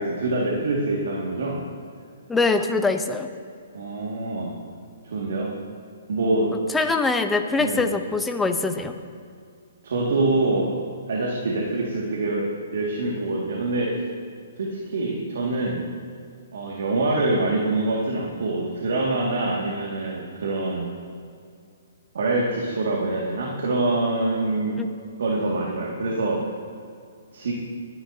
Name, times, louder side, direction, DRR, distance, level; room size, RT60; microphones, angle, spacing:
voice 1, 0.0-1.6 3.7-4.5 5.1-5.5 6.1-6.5 7.6-7.8 9.8-10.8 11.1-12.5 12.7-14.1 14.6-15.8 16.5-20.9 22.1-24.7 25.2-26.5 27.3-27.5, right 2 dB, 70° right, -2 dB, 2.2 m, -25 dB
voice 2, 2.3-3.3 6.7-9.0 24.8-24.9, left 3 dB, 5° left, 6 dB, 0.8 m, -23 dB
19.5 x 11.0 x 2.9 m, 2.3 s
hypercardioid pair, 145°, 0 cm